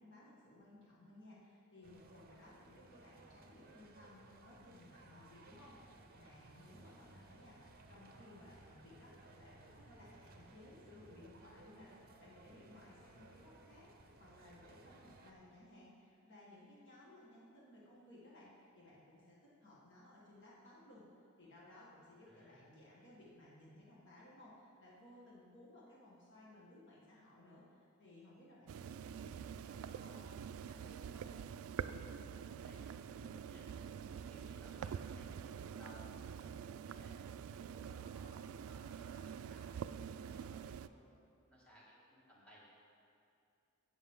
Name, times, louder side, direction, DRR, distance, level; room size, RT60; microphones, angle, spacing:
voice 1, 0.0-21.1 21.4-31.4, left 1 dB, 60° left, -6 dB, 1.8 m, -60 dB
sound 1, 1.8-15.3, right 2 dB, 45° right, 0.8 m, -60 dB
voice 2, 6.8-7.2 22.3-22.6 31.8-33.7 34.0-37.1 37.5-40.0 40.3-41.2 41.5-42.7, equal, 5° left, -7 dB, 2.4 m, -61 dB
sound 2, 28.7-40.9, right 7 dB, 80° right, 0.3 m, -46 dB
16.0 x 6.2 x 3.7 m, 2.5 s
head